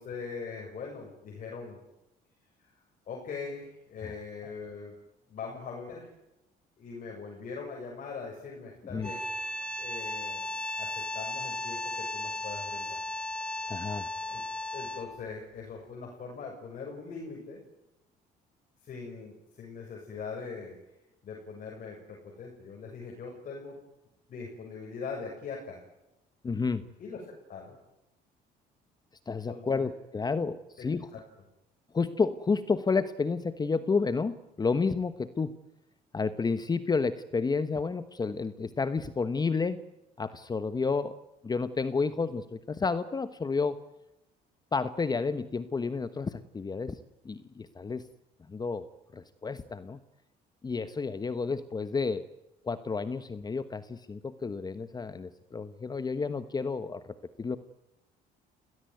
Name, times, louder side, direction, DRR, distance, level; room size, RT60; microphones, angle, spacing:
voice 1, 0.0-1.8 2.6-2.7 3.1-4.9 5.3-6.1 6.8-9.3 9.8-10.5 10.8-13.0 14.2-14.4 14.7-17.6 18.8-20.8 21.2-23.8 24.3-25.8 27.0-27.2 27.5-27.8 29.5-29.9 30.8-30.9 31.1-31.2, left 5 dB, 50° left, 0 dB, 7.0 m, -41 dB
sound 1, 9.0-15.2, left 2 dB, 5° left, 3.0 m, -35 dB
voice 2, 13.7-14.1 26.4-26.8 29.3-31.1 31.9-35.5 36.1-39.8 40.2-41.2 41.4-43.8 44.7-47.0 47.2-48.1 48.5-48.9 49.1-50.0 50.6-52.2 52.6-57.6, left 4 dB, 25° left, 12 dB, 1.1 m, -30 dB
29.5 x 17.5 x 9.4 m, 0.94 s
cardioid pair, 110°, 17 cm